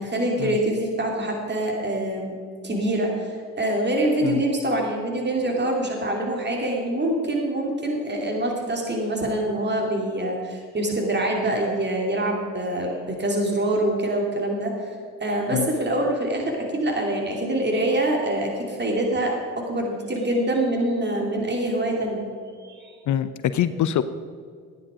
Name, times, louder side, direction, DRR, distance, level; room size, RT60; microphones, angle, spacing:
voice 1, 0.0-2.3 2.6-14.9 15.2-22.3 22.6-22.9, right 1 dB, 25° right, 0 dB, 2.8 m, -25 dB
voice 2, 23.1-24.0, left 10 dB, 50° left, 13 dB, 0.7 m, -24 dB
14.5 x 9.8 x 5.1 m, 2.1 s
hypercardioid pair, 50°, 39 cm